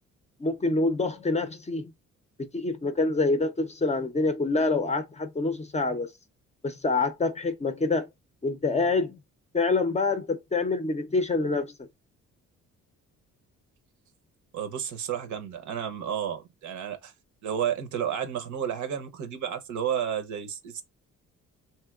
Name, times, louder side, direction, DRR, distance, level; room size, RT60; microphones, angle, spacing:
voice 1, 0.4-1.9 2.5-6.1 6.6-8.1 8.4-9.2 9.5-11.7, left 3 dB, 20° left, 0.5 m, -26 dB
voice 2, 14.5-17.1 17.4-20.8, right 9 dB, 75° right, 0.7 m, -31 dB
3.0 x 2.7 x 2.3 m
cardioid pair, 90°, 30 cm